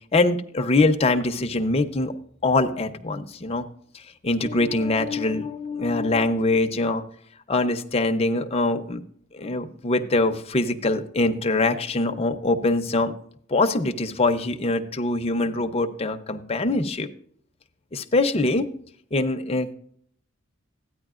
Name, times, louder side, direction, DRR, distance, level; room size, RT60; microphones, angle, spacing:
voice 1, 0.1-2.1 2.4-3.7 4.2-7.0 7.5-9.0 9.3-13.1 13.5-17.1 17.9-18.7 19.1-19.7, left 2 dB, 30° left, 6 dB, 0.6 m, -23 dB
13.5 x 9.6 x 2.4 m, 0.62 s
head